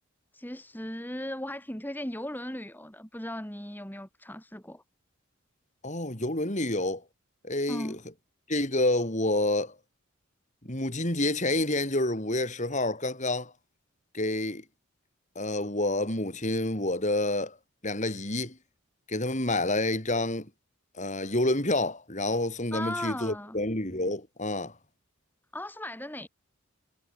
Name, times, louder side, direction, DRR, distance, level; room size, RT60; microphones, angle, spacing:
voice 1, 0.3-4.8 7.7-8.0 22.7-23.6 25.5-26.3, left 1 dB, 10° left, 3.1 m, -37 dB
voice 2, 5.8-7.0 7.4-8.0 8.5-9.7 10.6-13.5 14.1-14.6 15.3-17.6 17.8-18.6 19.1-20.5 21.0-24.7, left 2 dB, 35° left, 4.9 m, -28 dB
head